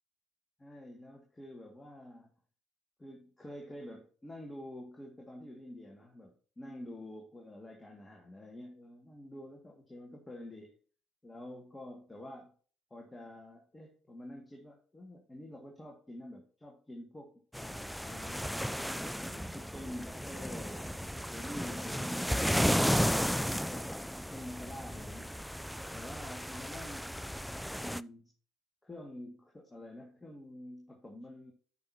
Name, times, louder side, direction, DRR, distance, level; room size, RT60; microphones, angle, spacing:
voice 1, 0.6-2.3 3.0-10.7 11.2-12.5 12.9-18.5 19.1-25.4 25.9-28.3 28.8-31.5, left 1 dB, 15° left, 1 dB, 2.0 m, -48 dB
sound 1, 17.5-28.0, equal, ahead, 0.3 m, -34 dB
12.0 x 6.1 x 2.8 m, 0.42 s
hypercardioid pair, 65°, 0 cm